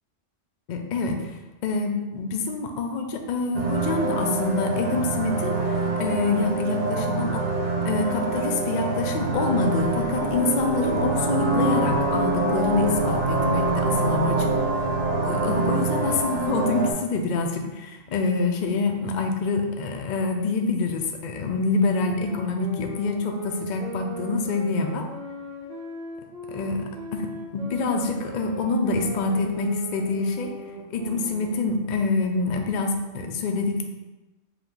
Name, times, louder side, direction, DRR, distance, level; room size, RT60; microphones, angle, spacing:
voice 1, 0.7-7.5 7.8-14.5 15.2-25.1 26.5-30.6 30.9-33.8, left 3 dB, 65° left, 3 dB, 0.4 m, -26 dB
sound 1, 3.5-16.9, right 3 dB, 50° right, 0.5 m, -25 dB
sound 2, 22.0-32.0, right 1 dB, 85° right, 1.4 m, -38 dB
4.9 x 2.7 x 3.8 m, 1.1 s
omnidirectional pair, 1.3 m